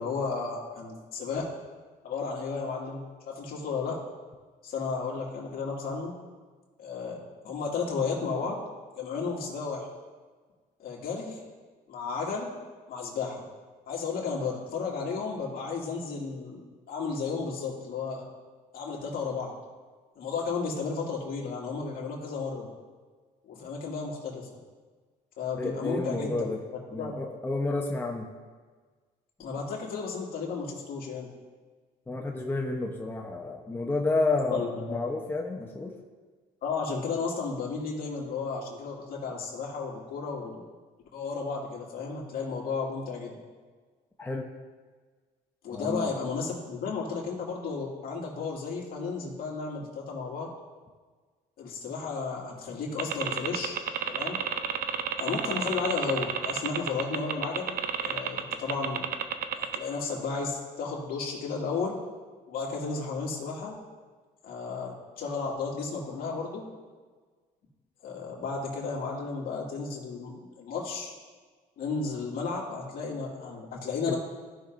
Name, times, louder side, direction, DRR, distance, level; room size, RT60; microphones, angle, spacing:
voice 1, 0.0-1.5 2.0-4.0 4.6-6.2 6.8-7.2 7.4-8.6 9.0-9.9 10.8-11.4 11.9-12.5 12.9-13.4 13.9-18.3 18.7-19.5 20.2-22.7 23.5-24.5 25.4-26.5 26.9-27.2 29.4-31.3 34.5-35.0 36.6-40.6 41.1-43.4 45.6-50.5 51.6-53.8 54.1-54.4 55.2-59.0 59.6-62.0 62.5-63.7 64.4-66.7 68.0-71.1 71.8-74.2, left 4 dB, 60° left, -3 dB, 2.2 m, -33 dB
voice 2, 25.6-26.6 26.9-28.3 32.1-35.9 44.2-44.5 45.7-46.1 74.1-74.2, left 2 dB, 10° left, 1 dB, 0.8 m, -30 dB
sound 1, 53.0-59.8, right 9 dB, 60° right, 0.6 m, -30 dB
15.0 x 5.8 x 2.6 m, 1.4 s
cardioid pair, 110°, 17 cm